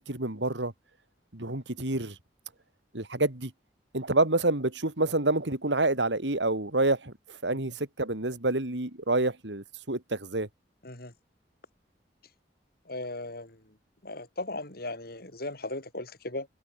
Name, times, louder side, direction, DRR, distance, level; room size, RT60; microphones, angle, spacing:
voice 1, 0.1-0.7 1.3-2.1 2.9-3.5 3.9-10.5, right 2 dB, 85° right, 3.0 m, -28 dB
voice 2, 12.9-13.6 14.0-16.5, left 2 dB, 60° left, 6.7 m, -37 dB
head